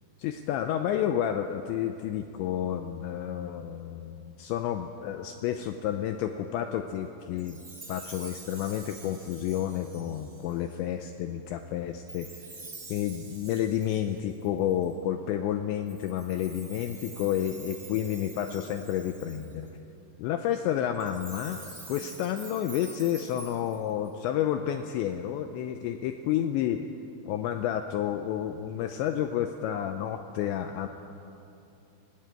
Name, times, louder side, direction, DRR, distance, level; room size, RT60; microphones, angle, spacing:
voice 1, 0.2-7.6 7.9-12.3 12.9-19.7 20.2-26.8 27.3-30.9, left 10 dB, 90° left, 7 dB, 2.6 m, -30 dB
Chime, 7.4-10.7 12.1-14.9 15.9-19.7 20.9-24.1, right 3 dB, 25° right, 1.1 m, -47 dB
19.0 x 16.0 x 9.2 m, 2.8 s
omnidirectional pair, 5.9 m